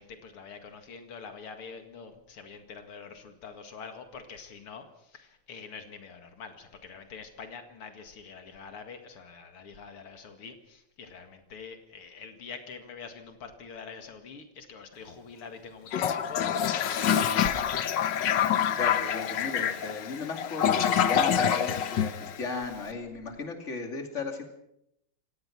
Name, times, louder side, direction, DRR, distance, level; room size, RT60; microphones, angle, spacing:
voice 1, 0.0-17.8, left 5 dB, 85° left, 6 dB, 2.9 m, -45 dB
Toilet flush, 15.9-22.8, left 9 dB, 60° left, 1.6 m, -26 dB
voice 2, 18.8-24.4, left 4 dB, 35° left, 4 dB, 3.0 m, -36 dB
26.5 x 18.0 x 6.0 m, 0.80 s
omnidirectional pair, 2.4 m